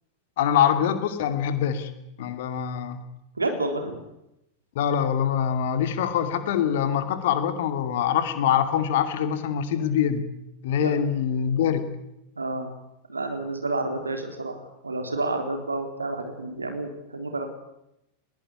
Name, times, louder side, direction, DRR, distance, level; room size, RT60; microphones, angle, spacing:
voice 1, 0.4-1.9 2.2-3.0 4.7-10.2 10.6-11.9, left 8 dB, 55° left, 9 dB, 2.5 m, -24 dB
voice 2, 3.4-4.0 10.8-10.9 12.4-12.7 13.1-14.6 14.8-17.5, right 2 dB, 80° right, 5 dB, 3.8 m, -29 dB
21.0 x 18.0 x 9.9 m, 0.86 s
figure-of-eight pair, 90°, 0 cm